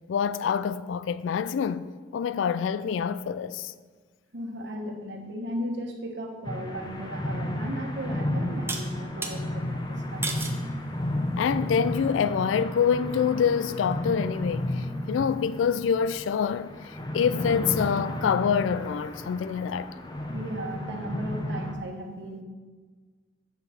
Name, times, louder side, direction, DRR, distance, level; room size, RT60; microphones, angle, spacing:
voice 1, 0.1-3.7 11.4-19.9, left 7 dB, 90° left, 0.3 m, -26 dB
voice 2, 4.3-10.4 20.3-22.4, equal, 65° right, 1.2 m, -36 dB
sound 1, 6.4-21.7, left 1 dB, 25° left, 0.8 m, -33 dB
sound 2, 7.3-7.4 8.7-9.4 10.2-10.6 11.3-11.7, right 3 dB, 15° right, 0.7 m, -33 dB
8.0 x 5.5 x 5.8 m
head